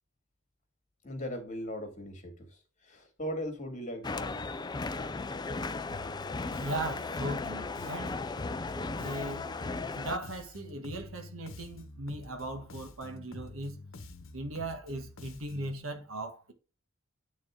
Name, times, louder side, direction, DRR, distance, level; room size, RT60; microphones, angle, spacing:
voice 1, 1.0-2.6 2.8-4.5, equal, 35° left, 2.2 m, -38 dB
sound 1, 4.0-10.2, left 3 dB, 20° left, 0.4 m, -36 dB
Bass guitar, 5.9-15.8, left 2 dB, 65° left, 1.1 m, -48 dB
voice 2, 6.6-8.2 8.9-9.5 9.9-13.7 14.3-16.5, right 1 dB, 80° right, 1.5 m, -38 dB
9.1 x 4.1 x 3.7 m
head